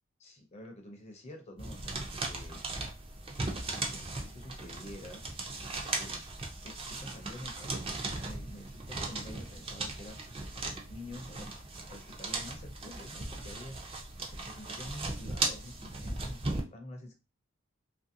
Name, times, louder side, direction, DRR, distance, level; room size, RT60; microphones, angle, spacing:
voice 1, 0.2-2.6 3.7-5.2 6.0-6.3 6.6-7.9 8.2-11.5 11.9-17.1, left 1 dB, 30° left, 3 dB, 0.5 m, -48 dB
sound 1, 1.6-16.6, right 2 dB, 25° right, 0.5 m, -38 dB
2.9 x 2.6 x 2.6 m, 0.29 s
head